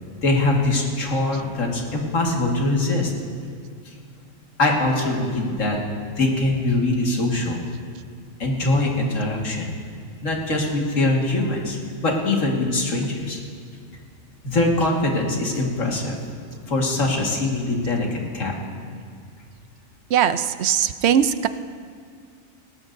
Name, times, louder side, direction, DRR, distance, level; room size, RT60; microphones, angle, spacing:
voice 1, 0.2-3.1 4.6-5.8 6.2-7.6 8.4-9.7 10.2-13.4 14.4-16.2 16.7-18.5, left 2 dB, 75° left, -1 dB, 2.2 m, -22 dB
voice 2, 20.1-21.5, right 9 dB, 65° right, 12 dB, 0.8 m, -20 dB
19.0 x 18.5 x 2.6 m, 2.1 s
omnidirectional pair, 1.3 m